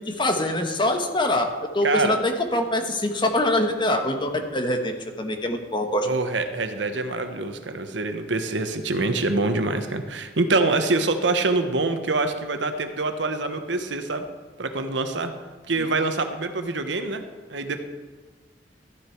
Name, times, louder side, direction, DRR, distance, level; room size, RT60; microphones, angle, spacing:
voice 1, 0.1-1.5 1.7-6.1, left 1 dB, 25° left, 5 dB, 1.2 m, -24 dB
voice 2, 1.8-2.2 6.0-14.2 14.6-15.3 15.7-17.2 17.5-17.8, right 3 dB, 75° right, 7 dB, 1.1 m, -25 dB
13.5 x 9.8 x 4.6 m, 1.4 s
head